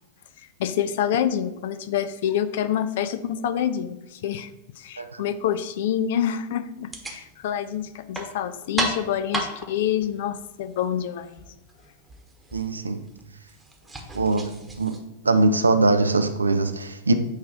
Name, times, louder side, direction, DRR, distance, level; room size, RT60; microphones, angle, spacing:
voice 1, 0.6-4.5 4.8-11.4, left 9 dB, 55° left, 12 dB, 0.4 m, -27 dB
sound 1, 6.8-15.0, right 2 dB, 10° right, 1.1 m, -36 dB
voice 2, 12.5-13.0 14.1-15.0 15.2-17.1, right 2 dB, 80° right, 9 dB, 0.5 m, -22 dB
8.4 x 3.0 x 4.7 m, 0.91 s
figure-of-eight pair, 90°, 0 cm